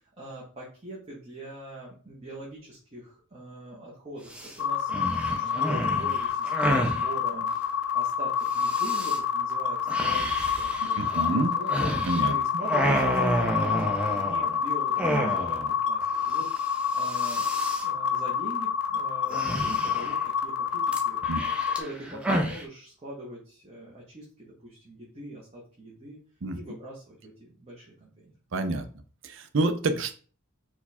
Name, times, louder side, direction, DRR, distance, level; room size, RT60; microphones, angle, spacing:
voice 1, 0.0-12.0 12.3-17.5 17.8-26.2 26.5-28.3, right 1 dB, 25° right, -5 dB, 1.0 m, -42 dB
sound 1, 4.3-4.5 4.9-7.0 8.6-9.2 9.9-12.3 12.6-14.6 15.0-15.7 16.0-16.1 16.4-16.7 16.9-17.8 19.3-20.2 20.9-22.6, right 1 dB, 5° right, 0.5 m, -30 dB
sound 2, 4.6-21.8, left 7 dB, 90° left, 0.6 m, -28 dB
voice 2, 11.0-11.5 12.1-12.4 21.3-21.4 26.4-26.6 28.5-28.8 29.2-30.1, right 2 dB, 60° right, 8 dB, 0.5 m, -27 dB
4.5 x 2.3 x 4.2 m, 0.41 s
head